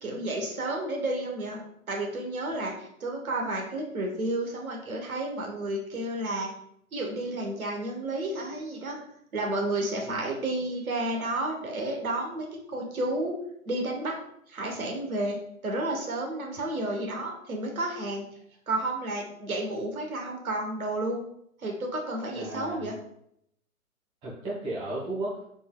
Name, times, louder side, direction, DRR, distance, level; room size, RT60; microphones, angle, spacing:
voice 1, 0.0-1.6 1.9-6.5 6.9-9.0 9.3-13.3 13.7-14.1 14.5-15.4 15.6-18.3 18.7-21.2 21.6-23.0, right 1 dB, 75° right, 1 dB, 1.2 m, -31 dB
voice 2, 22.3-22.9 24.2-25.4, right 2 dB, 15° right, -6 dB, 1.1 m, -34 dB
4.3 x 3.4 x 2.3 m, 0.72 s
figure-of-eight pair, 130°, 43 cm